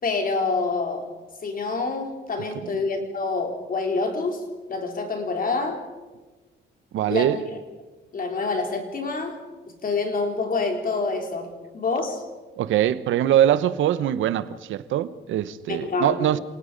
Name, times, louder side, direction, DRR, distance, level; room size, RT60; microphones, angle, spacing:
voice 1, 0.0-1.1 1.4-4.4 4.7-5.8 7.1-7.4 8.1-9.4 9.7-12.2 15.7-16.1, left 3 dB, 45° left, 4.1 m, -27 dB
voice 2, 6.9-7.4 12.6-16.4, right 11 dB, 80° right, 0.9 m, -22 dB
28.0 x 18.5 x 5.2 m
cardioid pair, 90°, 20 cm